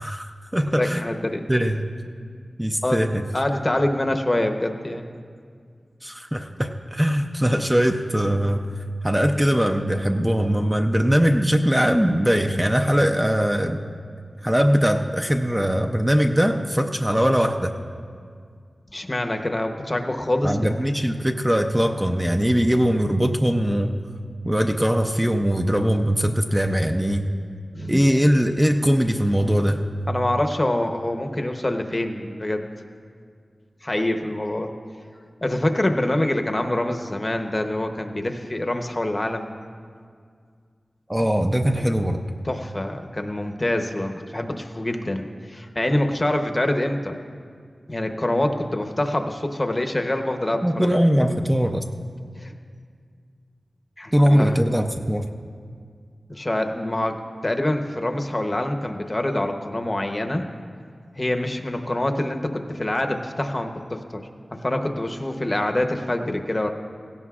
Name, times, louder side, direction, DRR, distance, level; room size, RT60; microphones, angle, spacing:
voice 1, 0.0-1.0 1.5-1.8 2.6-3.2 6.0-8.7 9.0-13.8 14.4-17.8 20.4-23.9 24.4-27.3 27.9-29.8 41.1-42.2 50.6-51.9 54.1-55.3, equal, 10° right, 3 dB, 0.5 m, -21 dB
voice 2, 0.6-1.4 2.8-3.1 3.3-5.2 18.9-20.7 27.7-28.0 30.1-32.6 33.8-34.7 35.4-39.5 41.8-41.9 42.4-47.1 47.9-51.0 52.4-52.5 54.0-54.6 56.3-60.4 61.2-64.2 64.5-66.7, left 1 dB, 25° left, 5 dB, 0.8 m, -25 dB
17.0 x 16.5 x 2.4 m, 2.1 s
wide cardioid pair, 90°, 0 cm